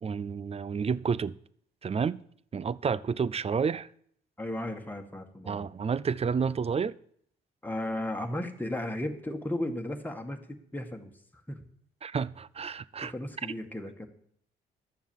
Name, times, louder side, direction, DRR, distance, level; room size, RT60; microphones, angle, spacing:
voice 1, 0.0-1.4 1.8-2.2 2.5-3.9 5.5-7.0 12.0-13.1, right 6 dB, 30° right, 0.5 m, -30 dB
voice 2, 4.4-5.7 7.6-11.1 11.5-11.6 13.0-14.1, left 1 dB, 10° left, 1.9 m, -35 dB
11.0 x 7.0 x 7.3 m
supercardioid pair, 55°, 20 cm